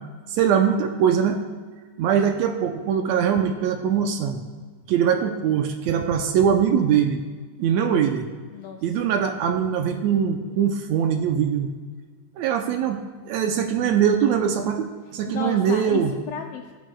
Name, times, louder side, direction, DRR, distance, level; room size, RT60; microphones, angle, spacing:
voice 1, 0.3-1.4 2.0-4.4 4.9-7.2 7.6-8.3 8.8-11.7 12.4-16.1, right 8 dB, 75° right, 5 dB, 1.7 m, -22 dB
voice 2, 8.5-9.0 15.2-16.7, left 6 dB, 80° left, 3 dB, 1.5 m, -34 dB
22.0 x 9.2 x 2.3 m, 1.5 s
omnidirectional pair, 3.5 m